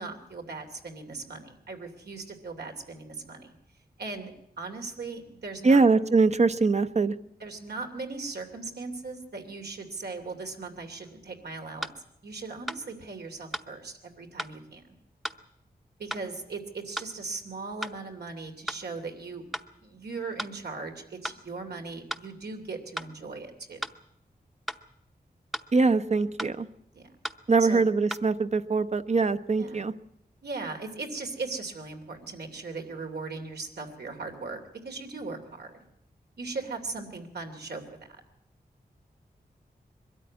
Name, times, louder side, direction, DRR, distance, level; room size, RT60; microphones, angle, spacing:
voice 1, 0.0-3.5 4.0-4.3 4.6-5.8 7.4-11.9 12.2-14.8 16.0-19.4 19.8-23.8 26.9-27.1 27.6-27.9 29.6-29.9 30.4-34.6 34.8-35.7 36.4-37.8 38.1-38.2, right 3 dB, 85° right, 3 dB, 2.9 m, -38 dB
voice 2, 5.6-7.1 25.7-26.7 27.5-29.9, right 4 dB, 45° right, 12 dB, 0.8 m, -22 dB
sound 1, 11.0-11.1 11.8-12.0 12.7-12.8 13.5-13.7 14.4-14.6 15.2-15.4 16.1-16.3 17.0-17.1 17.8-18.0 18.7-18.8 19.5-19.7 20.4-20.6 21.2-21.4 22.1-22.3 23.0-23.1 23.8-24.0 24.7-24.8 25.5-25.7 26.4-26.6 27.2-27.4 28.1-28.3, equal, ahead, 0.8 m, -35 dB
22.5 x 13.0 x 9.5 m, 0.81 s
wide cardioid pair, 105°, 16 cm